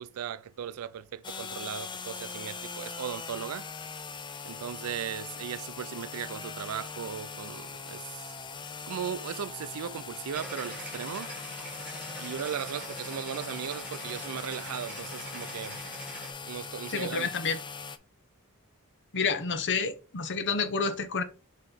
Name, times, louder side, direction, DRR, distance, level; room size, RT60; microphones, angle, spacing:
voice 1, 0.0-3.7 4.4-8.3 8.9-11.3 12.2-15.8 16.4-17.3, right 8 dB, 85° right, 0.4 m, -37 dB
sound 1, 1.2-18.0, left 5 dB, 20° left, 0.5 m, -41 dB
sound 2, 10.3-16.3, right 1 dB, 5° right, 2.1 m, -43 dB
voice 2, 16.9-17.6 19.1-21.2, left 5 dB, 55° left, 0.9 m, -29 dB
5.6 x 3.0 x 5.6 m
head